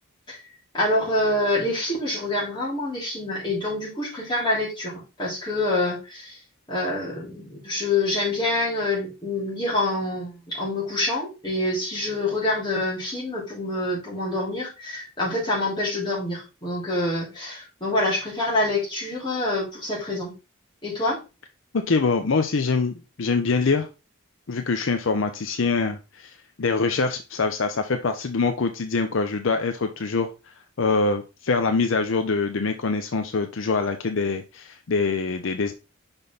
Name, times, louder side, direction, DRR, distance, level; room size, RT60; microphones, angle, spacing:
voice 1, 0.7-6.4 6.7-20.3 20.8-21.2, left 2 dB, 20° left, -7 dB, 3.7 m, -26 dB
voice 2, 21.7-23.9 24.5-30.3 30.8-35.7, left 4 dB, 65° left, 7 dB, 0.6 m, -24 dB
5.7 x 5.2 x 3.9 m, 0.29 s
head